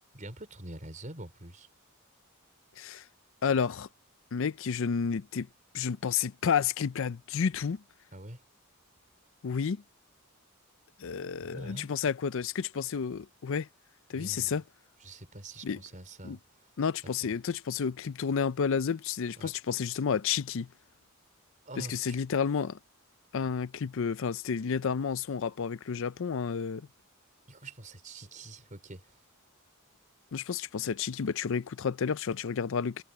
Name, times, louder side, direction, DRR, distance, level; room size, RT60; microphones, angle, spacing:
voice 1, 0.1-1.7 8.1-8.4 11.4-11.9 14.1-14.6 15.0-16.4 17.2-17.3 19.4-19.5 21.7-22.2 27.5-29.1, right 1 dB, 35° right, 4.5 m, -45 dB
voice 2, 3.4-3.9 4.3-5.5 5.7-7.8 9.4-9.8 11.0-13.7 14.1-14.6 15.6-15.8 16.2-16.4 16.8-20.7 21.8-22.8 23.3-26.8 30.3-33.0, left 6 dB, 65° left, 0.5 m, -31 dB
head